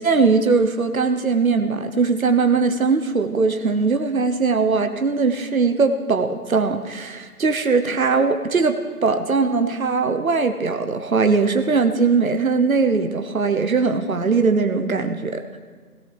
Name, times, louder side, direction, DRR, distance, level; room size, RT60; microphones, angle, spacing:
voice 1, 0.0-8.7 9.0-15.4, right 4 dB, 65° right, 7 dB, 1.0 m, -20 dB
19.5 x 17.5 x 3.4 m, 1.5 s
figure-of-eight pair, 170°, 45 cm